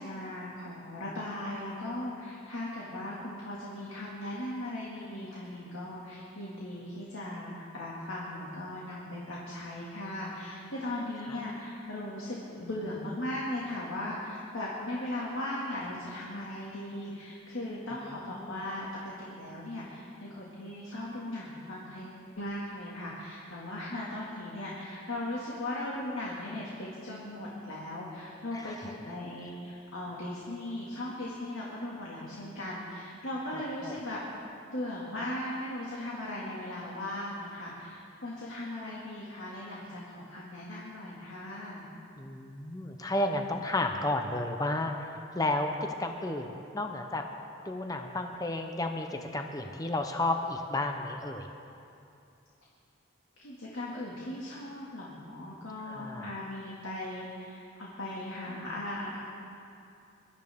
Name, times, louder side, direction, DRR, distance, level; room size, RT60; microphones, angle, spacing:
voice 1, 0.0-18.9 19.2-34.4 34.7-41.9 53.4-59.2, left 1 dB, 75° left, -5 dB, 2.1 m, -38 dB
voice 2, 28.5-28.9 33.5-34.0 42.2-45.1 45.3-45.7 46.0-47.2 47.6-51.5 55.9-56.3, left 2 dB, 15° left, 4 dB, 0.7 m, -32 dB
23.0 x 13.0 x 3.6 m, 2.7 s
head